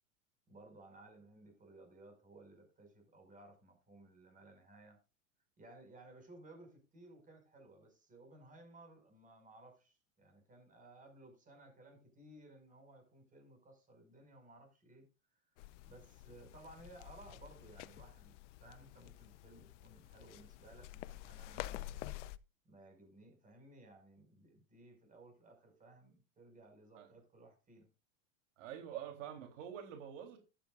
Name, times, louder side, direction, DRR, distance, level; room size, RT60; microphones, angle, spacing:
voice 1, 0.5-5.0 5.6-15.1 15.8-18.3 18.6-22.1 22.6-27.9, right 2 dB, 20° right, 5.7 m, -59 dB
sound 1, 15.6-22.4, left 16 dB, 65° left, 0.9 m, -49 dB
voice 2, 28.6-30.4, right 9 dB, 70° right, 3.6 m, -46 dB
13.0 x 11.5 x 2.5 m
supercardioid pair, 125°, 38 cm